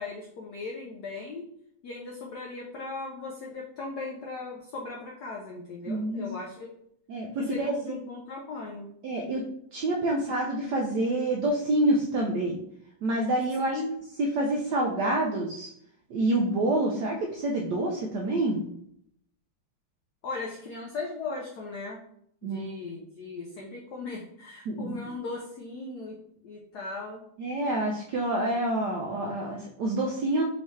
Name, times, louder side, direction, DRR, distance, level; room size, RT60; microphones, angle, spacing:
voice 1, 0.0-1.5 1.8-6.7 7.4-8.9 13.6-13.9 20.2-22.0 22.4-27.2, left 3 dB, 80° left, -2 dB, 0.9 m, -38 dB
voice 2, 5.9-6.3 7.1-8.0 9.0-9.4 9.7-12.6 13.0-13.7 14.2-15.7 16.1-18.7 22.4-22.7 24.7-25.2 27.4-30.4, right 1 dB, 80° right, 0 dB, 0.9 m, -27 dB
4.5 x 2.8 x 3.1 m, 0.71 s
omnidirectional pair, 2.4 m